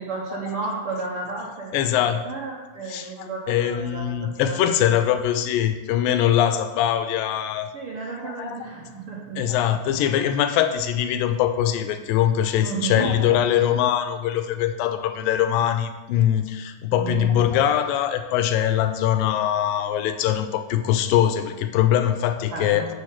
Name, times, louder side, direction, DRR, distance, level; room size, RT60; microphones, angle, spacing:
voice 1, 0.0-4.9 7.7-9.5 9.8-10.2 12.6-13.3 16.9-18.0 22.5-22.9, right 4 dB, 80° right, -3 dB, 1.2 m, -33 dB
voice 2, 1.7-2.2 2.9-7.7 8.2-8.6 9.4-22.9, left 10 dB, 90° left, 7 dB, 2.3 m, -22 dB
6.9 x 6.4 x 5.8 m, 1.2 s
omnidirectional pair, 4.0 m